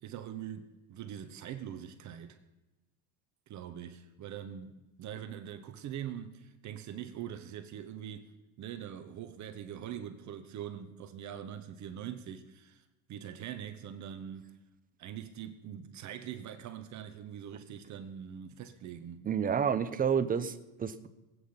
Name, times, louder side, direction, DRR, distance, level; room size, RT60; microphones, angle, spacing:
voice 1, 0.0-2.4 3.5-4.7 5.0-8.3 8.6-14.5 15.0-19.3, right 9 dB, 40° right, 1.2 m, -43 dB
voice 2, 19.2-21.1, right 7 dB, 20° right, 0.8 m, -30 dB
20.0 x 9.0 x 5.8 m
supercardioid pair, 120°, 43 cm